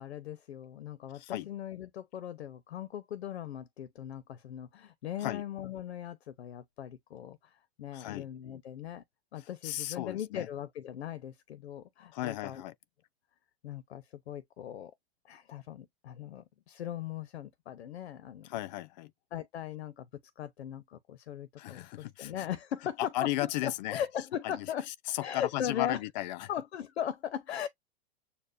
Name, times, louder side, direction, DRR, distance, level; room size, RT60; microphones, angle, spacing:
voice 1, 0.0-9.0 9.3-12.6 13.6-14.9 15.2-18.5 19.3-20.1 20.4-23.1 23.4-24.9 25.2-26.0 26.5-27.7, left 10 dB, 90° left, 0.9 m, -39 dB
voice 2, 1.1-1.5 5.2-5.4 7.9-8.3 9.4-10.5 12.1-12.7 18.4-19.1 21.6-22.5 23.0-24.0 24.4-26.5, left 15 dB, 45° left, 0.4 m, -36 dB
6.9 x 2.4 x 2.5 m
hypercardioid pair, 140°, 31 cm